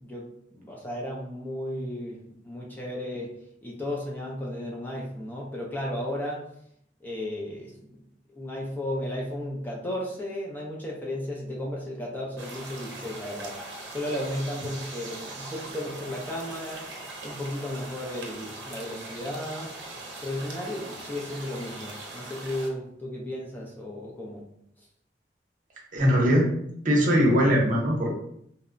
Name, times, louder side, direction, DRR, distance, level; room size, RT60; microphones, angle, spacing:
voice 1, 0.0-3.3 3.6-6.4 7.0-8.0 8.3-13.6 13.9-17.0 17.2-19.7 20.2-24.4, left 1 dB, 10° left, -3 dB, 0.4 m, -34 dB
sound 1, 12.4-22.7, right 2 dB, 85° right, 0.5 m, -41 dB
voice 2, 25.9-26.5 26.8-28.1, equal, 50° right, -2 dB, 0.7 m, -21 dB
2.8 x 2.1 x 2.5 m, 0.72 s
head